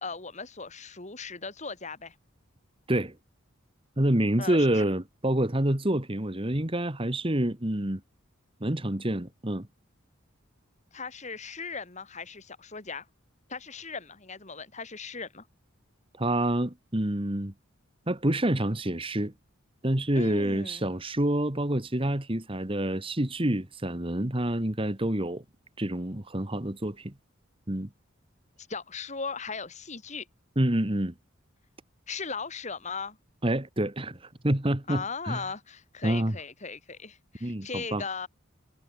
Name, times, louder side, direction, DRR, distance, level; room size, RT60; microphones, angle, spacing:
voice 1, 0.0-2.2 4.4-4.8 10.9-13.1 13.5-15.5 20.1-20.9 28.6-30.3 32.1-33.2 34.9-38.3, left 4 dB, 35° left, 2.3 m, -38 dB
voice 2, 4.0-8.0 8.6-9.7 16.2-17.5 18.1-19.3 19.8-25.4 25.8-27.1 27.7-27.9 30.5-31.1 33.4-35.5 36.0-36.4 37.4-38.0, right 1 dB, 25° right, 1.7 m, -27 dB
head